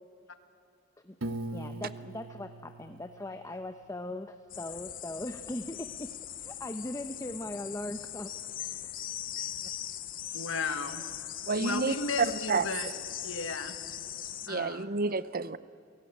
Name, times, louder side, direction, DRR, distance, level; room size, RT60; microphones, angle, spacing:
Piano, 1.2-4.1, right 1 dB, 65° right, 1.3 m, -41 dB
voice 1, 1.5-6.1 6.4-8.3 8.6-8.7 9.4-9.5, left 1 dB, 15° left, 8 dB, 0.8 m, -39 dB
sound 1, 4.5-14.5, left 11 dB, 45° left, 0.8 m, -40 dB
voice 2, 10.3-11.0 11.6-12.9 13.2-13.8 14.5-14.8, left 4 dB, 65° left, 9 dB, 1.7 m, -34 dB
voice 3, 11.5-11.9 12.5-12.7 14.5-15.6, right 4 dB, 45° right, 16 dB, 0.7 m, -30 dB
28.5 x 18.0 x 10.0 m, 2.6 s
head